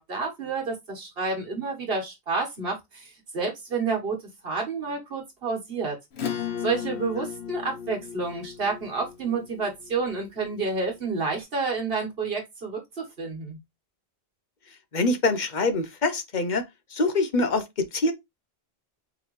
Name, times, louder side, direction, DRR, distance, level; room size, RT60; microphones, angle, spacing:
voice 1, 0.0-4.2 4.4-6.0 6.6-13.6, right 4 dB, 60° right, 1.7 m, -29 dB
Acoustic guitar / Strum, 6.1-11.1, left 8 dB, 75° left, 1.2 m, -36 dB
voice 2, 14.9-16.6 16.9-18.1, left 2 dB, 50° left, 0.8 m, -24 dB
4.7 x 3.3 x 3.1 m
omnidirectional pair, 1.1 m